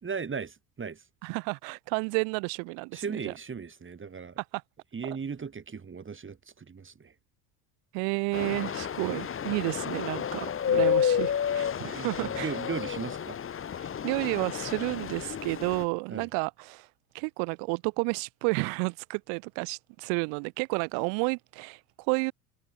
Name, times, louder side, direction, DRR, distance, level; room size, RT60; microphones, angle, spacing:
voice 1, 0.0-1.0 2.9-4.4 4.9-7.1 9.0-9.2 10.7-11.0 11.8-13.4 16.1-16.3, right 5 dB, 25° right, 3.8 m, -37 dB
voice 2, 1.2-3.3 4.4-4.6 5.0-5.2 7.9-12.6 13.7-16.9 17.1-22.3, right 40 dB or more, 70° right, 2.9 m, -31 dB
sound 1, 8.3-15.8, left 8 dB, 25° left, 1.3 m, -30 dB
hypercardioid pair, 80°, 46 cm